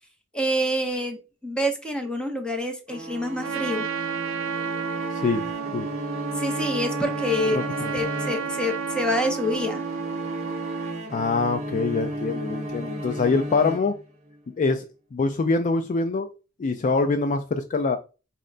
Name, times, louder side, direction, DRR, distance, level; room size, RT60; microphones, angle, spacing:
voice 1, 0.3-3.9 6.4-7.6 7.9-9.8, equal, 5° left, 0.7 m, -27 dB
sound 1, 2.9-14.4, right 1 dB, 35° right, 0.9 m, -33 dB
Trumpet, 3.4-11.0, right 7 dB, 65° right, 0.5 m, -32 dB
voice 2, 7.5-7.9 11.1-14.0 14.6-14.8 15.1-16.3 16.6-18.0, left 3 dB, 40° left, 0.3 m, -24 dB
4.3 x 2.1 x 3.8 m
head